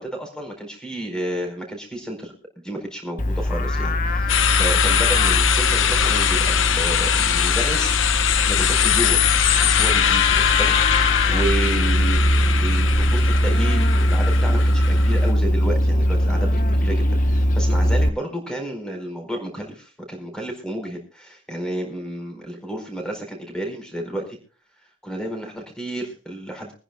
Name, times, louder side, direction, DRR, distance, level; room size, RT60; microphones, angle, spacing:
voice 1, 0.0-9.3 9.6-24.4 25.0-26.7, right 1 dB, 5° left, 2 dB, 4.5 m, -31 dB
Livestock farm animals working animals, 3.2-18.1, left 1 dB, 40° left, 1.0 m, -21 dB
sound 1, 4.3-15.3, left 9 dB, 75° left, 0.9 m, -22 dB
24.5 x 10.0 x 2.3 m, 0.40 s
head